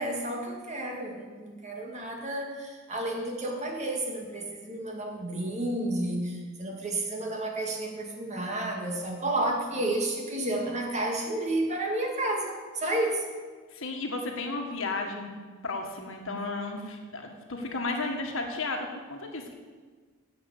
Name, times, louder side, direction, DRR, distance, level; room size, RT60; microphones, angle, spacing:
voice 1, 0.0-13.2, right 1 dB, 35° right, 1 dB, 2.1 m, -31 dB
voice 2, 13.7-15.3 15.6-19.5, left 3 dB, 65° left, 3 dB, 1.7 m, -33 dB
10.5 x 7.4 x 8.4 m, 1.5 s
head